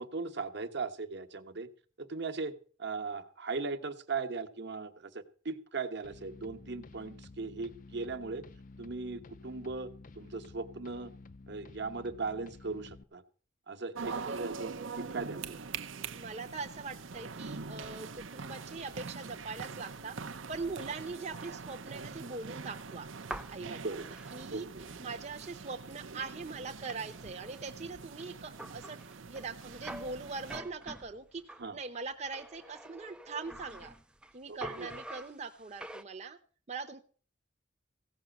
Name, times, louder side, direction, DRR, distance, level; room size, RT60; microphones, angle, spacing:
voice 1, 0.0-1.7 2.0-2.5 2.8-8.4 8.8-11.1 11.5-13.2 13.7-15.6 23.7-24.0 24.5-24.9 31.6-31.8 34.5-34.9, right 4 dB, 60° right, 8 dB, 1.2 m, -38 dB
sound 1, 6.0-13.0, left 3 dB, 45° left, 0.6 m, -52 dB
sound 2, 13.9-30.6, right 4 dB, 75° right, 0.8 m, -43 dB
voice 2, 14.1-14.6 15.9-20.2 20.5-23.1 23.5-24.7 25.0-29.0 29.3-31.4 31.7-33.9 34.3-36.4 36.7-37.0, right 4 dB, 35° right, 3 dB, 0.8 m, -42 dB
sound 3, 23.0-25.7 26.1-26.2 26.5-31.7 32.2-34.3 34.6-36.0, right 1 dB, 5° right, 0.5 m, -47 dB
16.0 x 6.0 x 7.7 m, 0.42 s
head